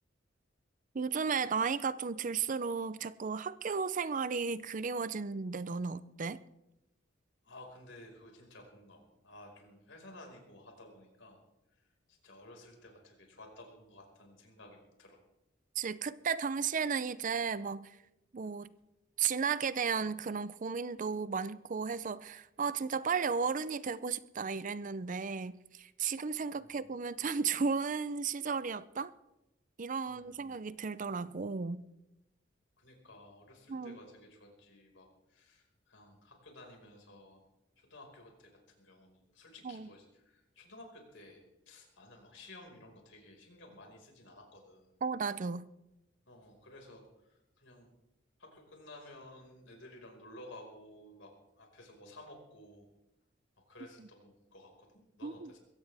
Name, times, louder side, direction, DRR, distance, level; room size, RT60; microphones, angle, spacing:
voice 1, 0.9-6.4 15.8-18.0 18.3-18.7 19.2-29.1 29.8-31.9 33.7-34.0 39.6-39.9 45.0-45.7 54.0-54.1 55.2-55.5, right 5 dB, 40° right, 0.5 m, -34 dB
voice 2, 7.4-11.4 12.1-15.2 26.5-26.9 30.1-30.6 32.8-37.4 37.8-44.9 46.3-47.9 48.4-52.9 53.7-55.6, left 1 dB, 70° left, 5.0 m, -54 dB
22.5 x 16.5 x 3.4 m
head